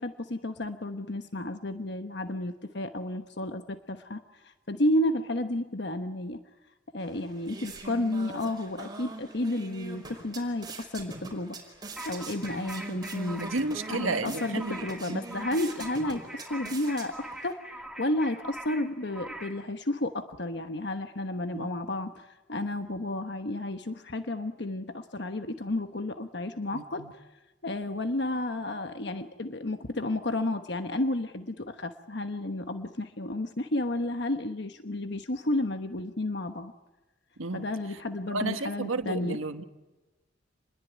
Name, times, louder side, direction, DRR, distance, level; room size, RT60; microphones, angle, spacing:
voice 1, 0.0-6.4 6.9-11.6 12.0-13.5 13.9-27.2 27.6-36.7 37.5-39.4, left 1 dB, 55° left, 8 dB, 1.2 m, -32 dB
sound 1, 7.0-17.5, right 2 dB, 20° right, 5.0 m, -43 dB
sound 2, 12.0-19.6, right 1 dB, 5° right, 2.8 m, -43 dB
voice 2, 13.4-15.2 21.5-21.7 26.7-27.1 37.4-37.7 38.3-39.6, right 3 dB, 90° right, 8 dB, 1.5 m, -32 dB
28.5 x 21.5 x 9.3 m, 1.1 s
head